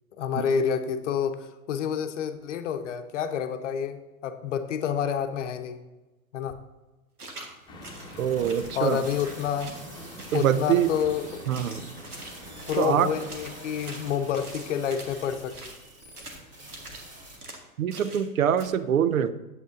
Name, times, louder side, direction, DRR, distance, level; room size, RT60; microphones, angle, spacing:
voice 1, 0.2-5.8 6.3-6.6 8.7-9.7 10.3-11.5 12.7-15.7, left 8 dB, 55° left, 8 dB, 0.8 m, -28 dB
sound 1, 7.2-7.5 7.8-9.9 10.2-11.1 11.4-15.8 16.2-16.4 16.7-17.0 17.4-17.6 17.9-18.3 18.6-18.7, right 2 dB, 85° right, 1.4 m, -44 dB
sound 2, 7.3-17.4, right 1 dB, 25° right, 2.4 m, -47 dB
sound 3, 7.7-15.4, left 1 dB, 10° left, 1.1 m, -46 dB
voice 2, 8.2-9.0 10.3-10.9 11.5-11.8 12.8-13.1 17.8-19.3, right 9 dB, 65° right, 13 dB, 0.6 m, -24 dB
8.3 x 7.5 x 2.6 m, 1.1 s
figure-of-eight pair, 105°, 44 cm